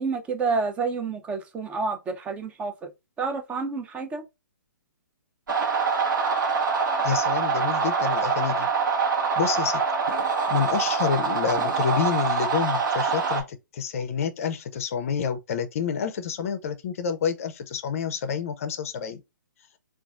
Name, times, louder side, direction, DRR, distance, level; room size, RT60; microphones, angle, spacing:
voice 1, 0.0-2.9 3.2-4.2, right 4 dB, 10° right, 0.4 m, -29 dB
sound 1, 5.5-13.4, right 5 dB, 70° right, 1.0 m, -25 dB
voice 2, 7.0-8.7 9.4-9.8 10.5-19.2, left 7 dB, 45° left, 0.5 m, -28 dB
3.9 x 2.4 x 2.3 m
figure-of-eight pair, 135°, 11 cm